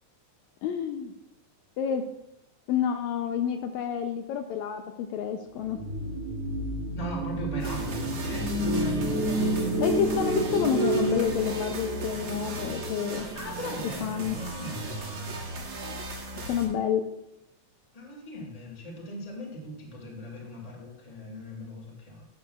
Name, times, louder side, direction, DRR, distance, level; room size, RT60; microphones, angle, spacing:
voice 1, 0.6-1.1 1.8-2.0 2.7-5.8 9.8-13.3 14.0-14.4 16.5-17.0, left 8 dB, 80° left, 6 dB, 1.8 m, -29 dB
sound 1, 5.6-13.9, right 1 dB, 85° right, 4.4 m, -30 dB
voice 2, 6.9-9.2 13.3-15.3 17.9-22.3, equal, 15° left, -1 dB, 1.4 m, -39 dB
sound 2, 7.6-16.7, right 2 dB, 55° right, 1.1 m, -37 dB
12.5 x 7.4 x 2.3 m, 0.83 s
omnidirectional pair, 3.4 m